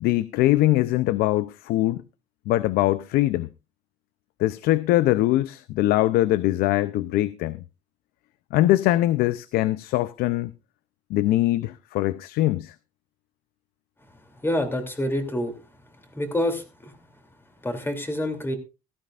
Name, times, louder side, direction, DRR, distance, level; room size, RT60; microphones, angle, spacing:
voice 1, 0.0-2.0 2.5-3.5 4.4-7.6 8.5-10.5 11.1-12.7, left 15 dB, 75° left, 0.6 m, -22 dB
voice 2, 14.4-15.5 16.1-16.9 17.6-18.6, left 1 dB, 15° left, 2.9 m, -27 dB
16.5 x 13.5 x 2.5 m
cardioid pair, 105°, 16 cm